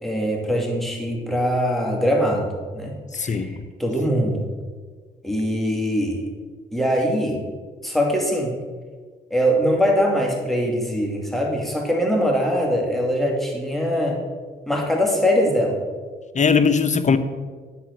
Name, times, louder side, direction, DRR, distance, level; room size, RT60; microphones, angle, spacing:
voice 1, 0.0-2.9 3.2-4.4 5.2-6.2 6.7-7.4 7.8-8.5 9.3-14.2 14.7-15.8, equal, ahead, -1 dB, 2.5 m, -22 dB
voice 2, 3.1-3.5 16.3-17.2, left 5 dB, 40° left, 10 dB, 0.8 m, -19 dB
10.0 x 4.2 x 6.5 m, 1.5 s
supercardioid pair, 55°, 19 cm